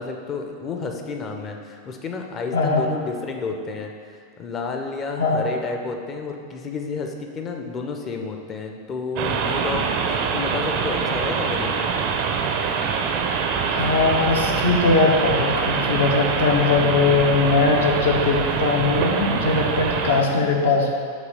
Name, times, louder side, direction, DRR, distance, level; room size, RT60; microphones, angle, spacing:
voice 1, 0.0-3.9 4.4-11.9, left 4 dB, 25° left, 3 dB, 0.6 m, -31 dB
voice 2, 2.5-2.8 5.2-5.5 13.7-20.9, left 4 dB, 65° left, 0 dB, 0.8 m, -20 dB
sound 1, 9.2-20.2, right 6 dB, 45° right, 0.4 m, -24 dB
6.2 x 2.9 x 5.3 m, 2.2 s
figure-of-eight pair, 90°, 0 cm